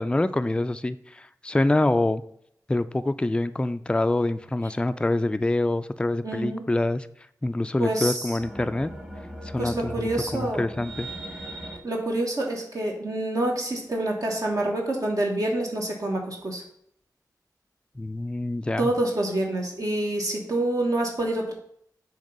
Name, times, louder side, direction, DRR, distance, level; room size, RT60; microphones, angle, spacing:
voice 1, 0.0-2.2 2.7-7.1 7.4-8.9 9.5-11.1 18.0-18.9, left 2 dB, 15° left, 11 dB, 0.3 m, -26 dB
voice 2, 6.2-6.6 7.8-8.2 9.6-10.6 11.8-16.6 18.8-21.5, right 1 dB, 55° right, -1 dB, 1.2 m, -27 dB
sound 1, 8.4-11.8, right 1 dB, 15° right, 1.1 m, -39 dB
7.3 x 2.9 x 5.4 m, 0.69 s
wide cardioid pair, 80°, 7 cm